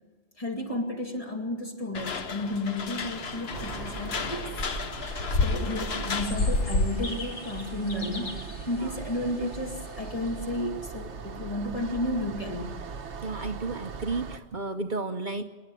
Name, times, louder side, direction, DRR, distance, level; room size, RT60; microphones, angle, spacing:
voice 1, 0.4-4.5 5.4-12.7, left 1 dB, 30° left, 1 dB, 2.5 m, -32 dB
sound 1, 1.9-7.2, left 3 dB, 65° left, 1.3 m, -30 dB
sound 2, 3.5-14.4, right 5 dB, 85° right, 1.3 m, -40 dB
sound 3, 6.2-10.7, left 2 dB, 90° left, 2.6 m, -43 dB
voice 2, 13.2-15.4, right 3 dB, 50° right, 6 dB, 0.9 m, -32 dB
26.5 x 11.0 x 9.1 m, 1.3 s
omnidirectional pair, 1.2 m